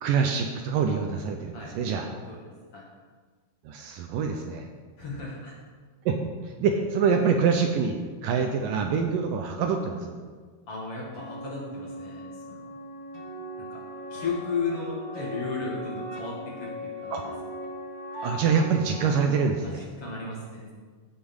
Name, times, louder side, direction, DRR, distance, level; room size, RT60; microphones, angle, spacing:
voice 1, 0.0-2.1 3.7-4.7 6.1-6.2 6.6-10.2 17.1-17.2 18.2-19.9, right 6 dB, 75° right, 4 dB, 2.2 m, -25 dB
voice 2, 2.0-2.8 5.0-5.5 10.7-12.7 13.6-13.8 14.1-17.3 19.6-20.7, left 4 dB, 45° left, -4 dB, 2.5 m, -35 dB
sound 1, 11.1-19.1, equal, 50° right, 1.5 m, -38 dB
15.0 x 6.9 x 5.4 m, 1.5 s
omnidirectional pair, 4.4 m